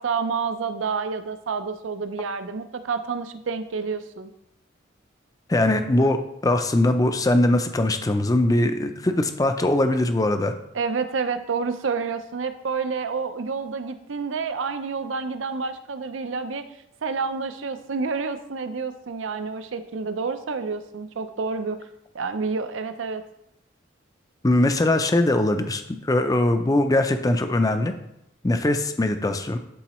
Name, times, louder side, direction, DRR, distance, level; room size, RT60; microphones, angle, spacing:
voice 1, 0.0-4.3 10.7-16.7 17.0-21.8 22.1-23.2, right 5 dB, 80° right, 10 dB, 0.5 m, -29 dB
voice 2, 5.5-6.2 6.4-10.5 24.4-27.9 28.4-29.6, left 1 dB, 20° left, 8 dB, 0.4 m, -21 dB
11.5 x 3.9 x 3.1 m, 0.80 s
head